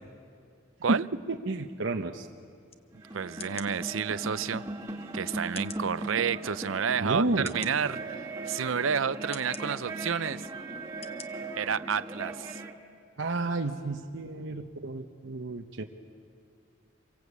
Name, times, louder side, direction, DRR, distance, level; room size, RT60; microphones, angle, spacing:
voice 1, 1.3-2.3 7.0-7.5 13.2-15.8, right 2 dB, 70° right, 3 dB, 1.0 m, -31 dB
sound 1, 2.7-2.8 3.4-3.7 4.4-4.5 5.5-5.9 6.6-6.7 7.4-7.7 8.5-8.7 9.3-9.6 10.3-10.5 11.0-11.3 11.7-11.8, left 7 dB, 30° left, 0.9 m, -44 dB
sound 2, 2.9-12.8, right 2 dB, 15° right, 1.9 m, -39 dB
voice 2, 3.1-4.7 5.1-7.2 7.5-10.5 11.6-12.6, right 7 dB, 85° right, 16 dB, 0.6 m, -30 dB
27.0 x 23.0 x 8.3 m, 2.3 s
head